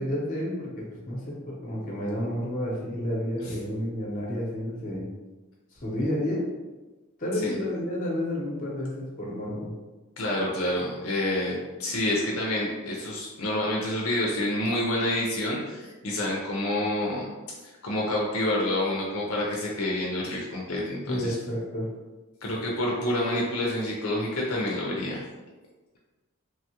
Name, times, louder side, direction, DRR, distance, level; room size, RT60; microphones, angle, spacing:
voice 1, 0.0-5.1 5.8-6.4 7.2-9.7 21.1-21.9, left 1 dB, 40° left, -3 dB, 0.8 m, -30 dB
voice 2, 10.2-17.3 17.8-21.3 22.4-25.2, left 1 dB, 75° left, -3 dB, 0.5 m, -28 dB
3.2 x 2.3 x 2.8 m, 1.2 s
head